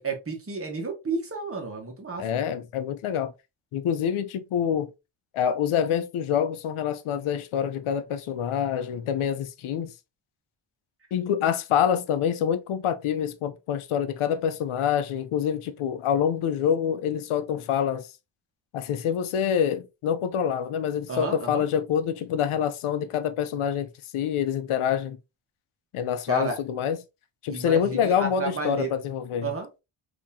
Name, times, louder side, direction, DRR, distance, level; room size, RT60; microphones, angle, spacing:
voice 1, 0.0-2.4 21.1-21.7 26.3-26.6 27.5-28.9 29.4-29.7, right 3 dB, 30° right, 1.2 m, -31 dB
voice 2, 2.2-3.3 3.7-4.9 5.3-9.9 11.1-18.1 18.7-25.2 25.9-27.0 27.4-29.5, left 8 dB, 85° left, 0.7 m, -26 dB
3.6 x 2.9 x 2.7 m
wide cardioid pair, 105°, 48 cm